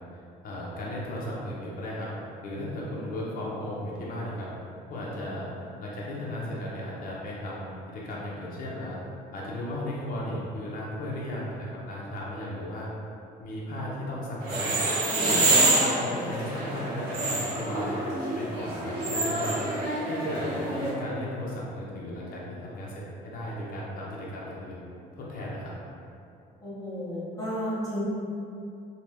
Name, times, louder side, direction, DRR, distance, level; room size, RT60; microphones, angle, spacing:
voice 1, 0.4-2.1 2.4-4.5 4.9-5.5 5.8-9.0 9.3-12.9 13.4-14.8 15.2-17.9 18.3-19.7 20.1-24.8 25.1-25.8, left 1 dB, 55° left, -5 dB, 0.8 m, -35 dB
sound 1, 14.4-20.9, right 2 dB, 75° right, 1.1 m, -27 dB
voice 2, 26.6-28.0, equal, 20° left, -12 dB, 1.2 m, -33 dB
2.8 x 2.3 x 3.3 m, 2.6 s
cardioid pair, 110°, 17 cm